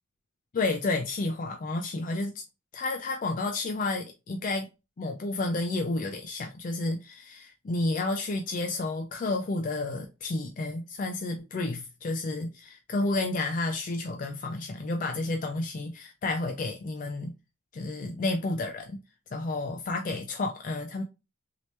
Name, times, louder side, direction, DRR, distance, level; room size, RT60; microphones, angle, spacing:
voice 1, 0.5-2.4 2.7-4.7 5.0-17.3 17.7-19.0 19.3-21.0, left 2 dB, 40° left, 0.3 m, -31 dB
3.2 x 2.9 x 2.8 m
head